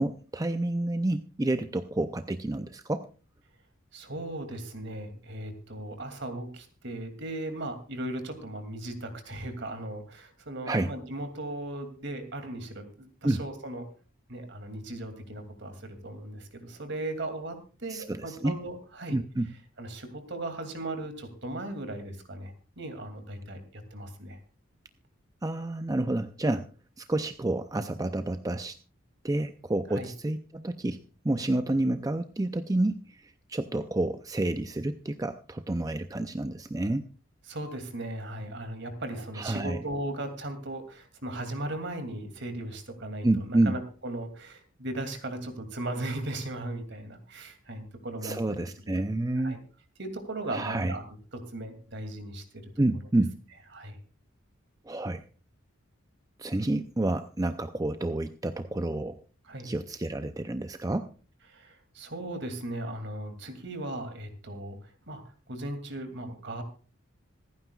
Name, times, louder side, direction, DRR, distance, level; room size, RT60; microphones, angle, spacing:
voice 1, 0.0-3.1 10.7-10.9 13.2-13.4 17.9-18.6 19.1-19.5 25.4-26.7 27.0-28.8 29.2-37.0 39.3-39.8 43.2-43.8 48.2-49.6 50.5-51.0 52.8-53.3 54.9-55.2 56.4-59.2 59.6-61.1, right 2 dB, 15° right, 9 dB, 0.5 m, -29 dB
voice 2, 3.9-13.9 14.3-19.2 19.8-24.4 29.9-30.1 37.5-49.1 49.4-49.6 50.0-52.6 53.7-54.0 59.4-59.7 61.5-65.2 65.5-66.6, right 1 dB, 55° right, 7 dB, 2.6 m, -37 dB
26.5 x 9.5 x 2.4 m, 0.37 s
head